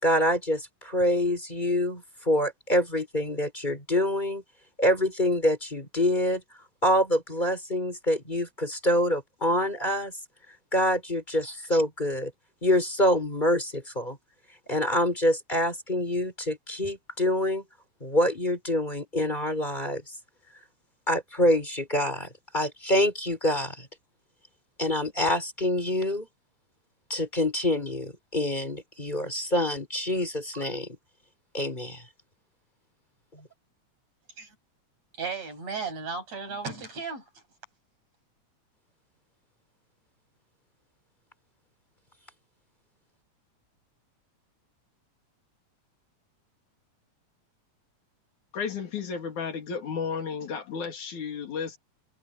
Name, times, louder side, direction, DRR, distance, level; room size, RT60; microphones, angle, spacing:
voice 1, 0.0-4.4 4.8-6.4 6.8-10.1 10.7-12.3 12.6-14.2 14.7-17.6 18.0-20.0 21.1-23.9 24.8-26.3 27.1-30.9 31.5-32.0 33.3-33.5, left 1 dB, 15° left, 4.6 m, -26 dB
voice 2, 35.2-37.3, right 4 dB, 60° right, 8.4 m, -34 dB
voice 3, 48.5-51.8, left 6 dB, 85° left, 4.3 m, -33 dB
omnidirectional pair, 3.3 m